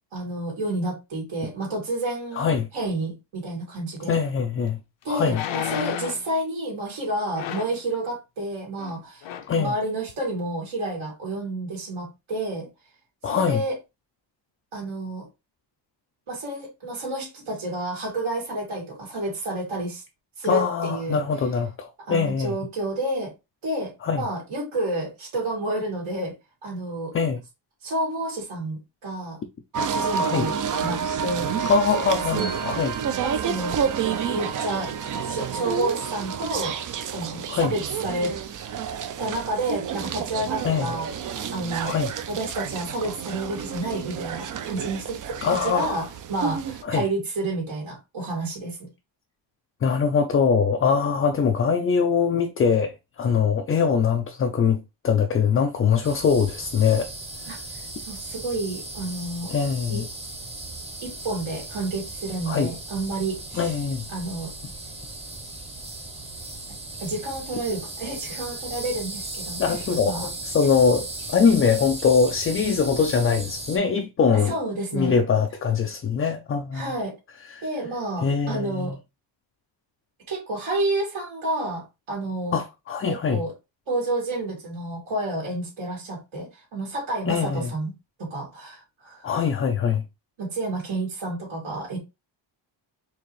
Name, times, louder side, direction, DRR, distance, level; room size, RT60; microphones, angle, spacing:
voice 1, 0.1-4.2 5.0-9.3 9.6-12.7 13.2-13.8 14.7-15.3 16.3-20.0 20.4-21.2 22.1-23.3 23.6-26.3 26.6-27.1 27.8-29.4 29.9-31.5 32.3-32.6 33.2-33.8 34.3-34.9 35.2-38.3 39.2-41.1 41.5-41.9 42.3-48.8 57.5-57.6 58.0-59.5 59.9-60.0 61.0-63.7 64.1-64.5 67.0-70.3 74.3-75.2 76.7-77.1 77.6-78.9 80.3-82.6 83.3-83.5 83.9-87.9 88.2-89.3 90.4-92.0, right 2 dB, 75° right, 2.3 m, -30 dB
voice 2, 2.4-2.7 4.1-4.8 5.1-5.4 9.5-9.7 13.2-13.6 20.5-22.5 24.0-24.2 27.1-27.4 30.2-30.5 31.7-32.9 37.5-37.7 40.6-40.9 41.8-42.1 45.4-46.0 46.8-47.0 49.8-57.1 57.5-57.6 59.5-60.1 62.5-62.7 63.5-64.1 69.6-74.5 74.9-76.8 77.5-77.6 78.2-78.9 82.5-83.4 87.3-87.7 89.2-90.0, left 6 dB, 30° left, 0.3 m, -22 dB
sound 1, 4.2-4.3 5.3-6.3 7.3-7.8 8.8-8.9 9.2-9.6 10.1-10.2, left 11 dB, 70° left, 0.7 m, -32 dB
sound 2, 29.7-46.8, right 7 dB, 45° right, 0.5 m, -29 dB
sound 3, 56.0-73.8, right 2 dB, 15° right, 0.8 m, -37 dB
4.6 x 2.8 x 3.0 m
cardioid pair, 140°, 47 cm